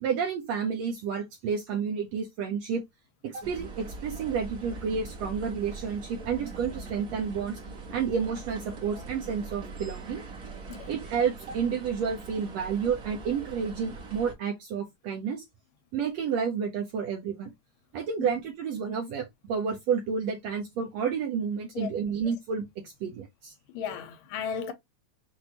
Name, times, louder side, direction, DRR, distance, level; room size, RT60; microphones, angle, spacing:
voice 1, 0.0-2.8 3.2-7.6 7.9-10.2 10.9-15.4 15.9-17.5 17.9-23.5, right 6 dB, 75° right, 1.6 m, -30 dB
sound 1, 3.4-14.3, right 3 dB, 45° right, 1.0 m, -42 dB
voice 2, 23.7-24.7, left 7 dB, 85° left, 2.4 m, -35 dB
6.0 x 2.6 x 2.9 m
omnidirectional pair, 3.8 m